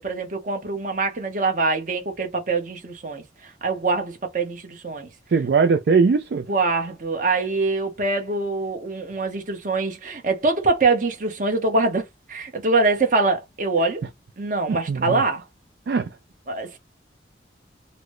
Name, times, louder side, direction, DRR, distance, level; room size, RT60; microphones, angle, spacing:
voice 1, 0.0-5.1 6.5-14.0 14.4-15.4 16.5-16.8, right 3 dB, 45° right, 1.0 m, -24 dB
voice 2, 5.3-6.5 14.7-15.2 15.9-16.1, right 5 dB, 60° right, 0.3 m, -20 dB
4.0 x 2.1 x 3.0 m
head